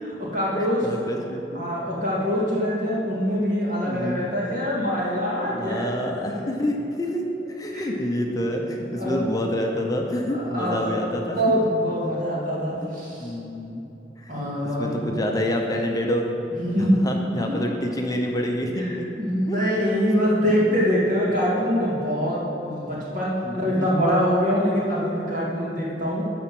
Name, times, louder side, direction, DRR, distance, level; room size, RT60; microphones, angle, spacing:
voice 1, 0.0-0.8 1.5-5.9 6.3-6.6 7.7-7.9 8.9-9.3 10.3-10.8 11.2-13.3 14.3-15.0 16.6-17.0 17.3-17.4 18.8-18.9 19.2-26.2, equal, 45° right, -6 dB, 2.6 m, -24 dB
voice 2, 0.5-1.7 3.9-4.2 5.5-7.2 7.5-11.4 12.8-13.8 14.2-16.3 16.8-19.1 19.5-19.6 20.4-20.5 23.4-24.0, left 1 dB, 20° left, 1 dB, 0.8 m, -28 dB
12.0 x 4.4 x 7.8 m, 3.0 s
head